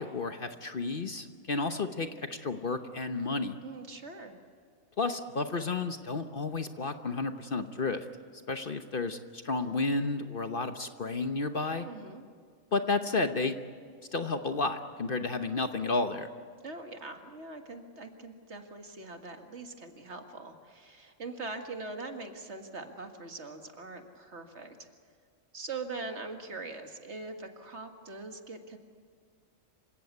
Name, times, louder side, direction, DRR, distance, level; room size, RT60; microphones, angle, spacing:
voice 1, 0.0-3.6 5.0-8.0 8.5-11.9 12.7-13.5 14.1-16.3, left 3 dB, 45° left, 8 dB, 1.1 m, -32 dB
voice 2, 3.6-4.4 11.8-12.2 16.6-24.9 25.5-28.8, right 3 dB, 55° right, 5 dB, 2.2 m, -42 dB
27.0 x 17.0 x 9.5 m, 2.1 s
omnidirectional pair, 1.4 m